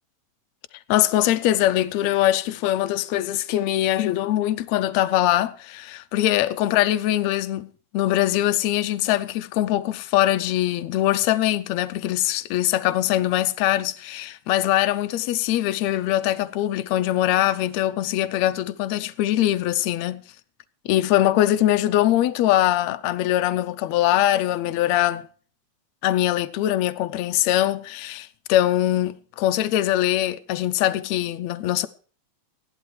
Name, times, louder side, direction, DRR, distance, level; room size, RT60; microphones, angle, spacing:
voice 1, 0.9-20.2 20.9-25.3 26.0-31.9, left 13 dB, 75° left, 2.0 m, -22 dB
15.0 x 11.5 x 4.7 m
omnidirectional pair, 3.3 m